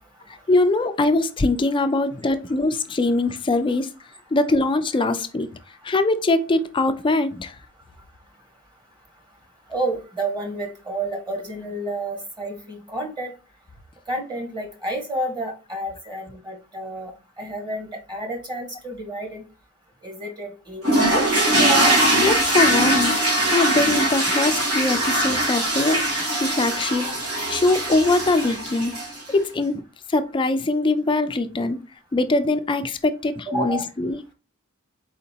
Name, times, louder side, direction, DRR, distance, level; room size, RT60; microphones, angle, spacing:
voice 1, 0.5-3.9 4.3-5.5 5.8-7.5 22.2-23.1 23.5-26.0 26.3-27.1 27.5-28.9 29.3-29.8 30.1-31.8 32.1-34.2, left 2 dB, 20° left, 0.4 m, -22 dB
voice 2, 9.7-13.3 14.1-17.1 17.4-19.4 20.0-21.3 21.6-22.0 33.4-33.9, right 1 dB, 20° right, 1.4 m, -30 dB
sound 1, 20.8-29.3, right 1 dB, 80° right, 2.0 m, -21 dB
4.3 x 4.0 x 2.8 m
head